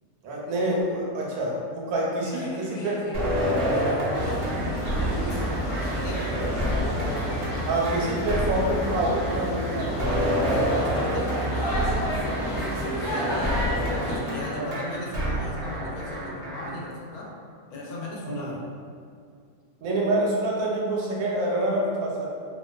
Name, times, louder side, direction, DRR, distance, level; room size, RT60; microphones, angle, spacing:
voice 1, 0.2-3.3 4.5-4.6 7.7-10.6 14.5-14.7 18.2-18.5 19.8-22.3, right 1 dB, 85° right, -3 dB, 1.1 m, -27 dB
voice 2, 2.2-6.9 9.7-13.6 13.9-17.3 17.7-18.6, left 1 dB, 85° left, -3 dB, 1.1 m, -38 dB
sound 1, 3.1-16.8, equal, 60° right, 0.6 m, -28 dB
sound 2, 4.1-14.2, equal, 60° left, 0.9 m, -30 dB
2.6 x 2.2 x 2.3 m, 2.2 s
omnidirectional pair, 1.5 m